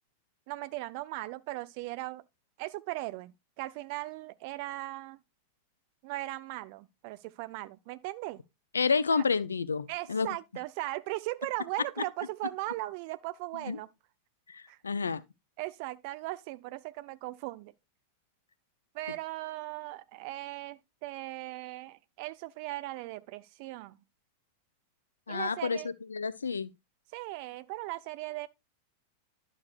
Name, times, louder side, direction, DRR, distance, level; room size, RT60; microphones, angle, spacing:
voice 1, 0.5-2.2 2.6-5.2 6.0-8.4 9.1-9.2 9.9-13.9 14.7-14.8 15.6-17.7 18.9-24.0 25.3-25.9 27.1-28.5, right 18 dB, 45° right, 0.6 m, -38 dB
voice 2, 8.7-10.3 13.6-13.8 14.5-15.2 25.3-26.7, left 5 dB, 75° left, 0.5 m, -30 dB
11.5 x 6.4 x 2.5 m
figure-of-eight pair, 90°, 0 cm